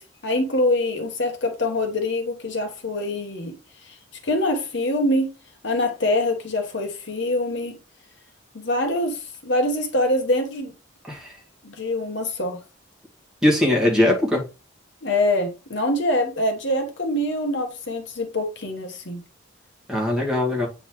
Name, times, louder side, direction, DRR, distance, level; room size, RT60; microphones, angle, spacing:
voice 1, 0.0-3.5 3.9-4.0 4.2-5.3 5.6-7.8 8.5-10.7 11.6-12.6 15.0-19.2, left 1 dB, 60° left, 1.1 m, -24 dB
voice 2, 13.4-14.4 19.9-20.7, left 1 dB, 5° right, 1.9 m, -20 dB
8.2 x 3.9 x 3.1 m
head